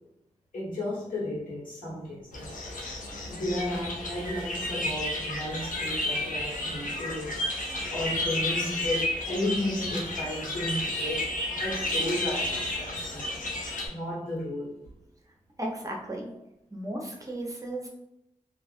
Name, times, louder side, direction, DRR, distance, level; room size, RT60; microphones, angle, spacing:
voice 1, 0.5-2.6 3.3-13.5 13.9-14.8, left 1 dB, 90° left, -7 dB, 1.3 m, -34 dB
sound 1, 2.3-13.9, left 1 dB, 75° left, 0.6 m, -32 dB
voice 2, 15.6-16.3 16.7-17.9, right 1 dB, 25° right, -1 dB, 0.7 m, -35 dB
2.4 x 2.4 x 2.4 m, 0.83 s
cardioid pair, 40°, 14 cm